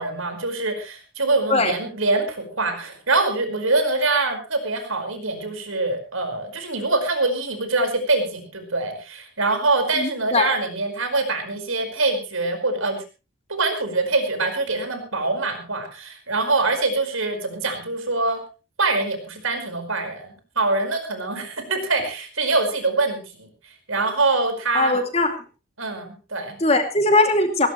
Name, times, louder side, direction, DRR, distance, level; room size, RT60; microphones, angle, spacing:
voice 1, 0.0-13.0 13.5-18.4 18.8-23.5 23.9-24.9 25.8-26.6, right 3 dB, 75° right, 6 dB, 5.1 m, -24 dB
voice 2, 10.0-10.5 24.7-25.4 26.6-27.7, left 2 dB, 30° left, 6 dB, 2.6 m, -20 dB
19.0 x 17.5 x 3.2 m, 0.32 s
head